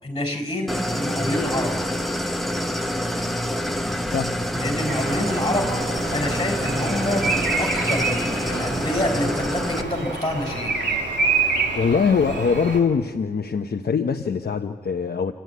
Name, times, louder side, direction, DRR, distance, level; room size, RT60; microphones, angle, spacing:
voice 1, 0.0-1.7 4.5-5.8 6.1-10.7, left 1 dB, 25° left, 3 dB, 5.1 m, -27 dB
Idling, 0.7-9.8, equal, ahead, 1.3 m, -26 dB
voice 2, 4.1-4.4 11.7-15.3, left 6 dB, 60° left, 4 dB, 0.8 m, -22 dB
Bird vocalization bird call bird song, 4.9-12.8, right 4 dB, 75° right, 3.2 m, -27 dB
29.0 x 11.5 x 9.4 m, 1.5 s
wide cardioid pair, 95°, 18 cm